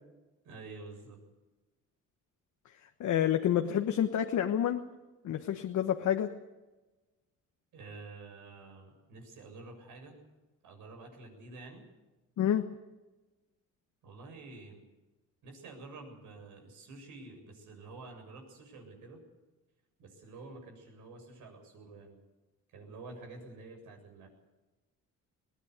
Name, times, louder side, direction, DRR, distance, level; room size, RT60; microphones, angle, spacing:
voice 1, 0.4-1.2 7.7-10.2 10.6-11.9 14.0-14.8 15.4-19.2 20.0-22.2 22.7-24.3, right 3 dB, 85° right, 3 dB, 7.5 m, -49 dB
voice 2, 3.0-4.8 5.2-6.3 12.4-12.6, left 10 dB, 70° left, 5 dB, 1.3 m, -28 dB
22.0 x 17.0 x 8.2 m, 1.1 s
cardioid pair, 90°, 30 cm